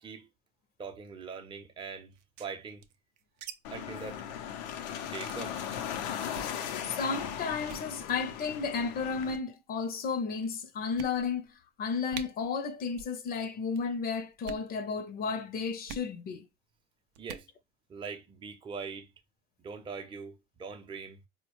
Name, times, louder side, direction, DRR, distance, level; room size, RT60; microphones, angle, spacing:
voice 1, 0.8-2.9 3.7-4.3 5.0-5.7 17.2-17.5 17.9-19.1 19.6-21.2, right 5 dB, 25° right, 0.6 m, -42 dB
sound 1, 2.1-3.5 3.8-3.9 4.1-4.3 4.7-4.9 5.3-5.5 6.2-6.5 7.1-7.3 7.6-7.9 8.8-9.2 9.9-10.0 10.4-10.5 11.0-11.5 11.8-11.9 12.1-12.3 12.9-13.2 13.4-13.8 14.3-14.7 15.9-16.1 17.1-17.5, right 8 dB, 85° right, 0.5 m, -45 dB
sound 2, 3.6-9.4, left 9 dB, 90° left, 0.5 m, -38 dB
voice 2, 6.8-16.4, left 5 dB, 45° left, 0.6 m, -33 dB
4.2 x 2.1 x 3.0 m
supercardioid pair, 95°, 21 cm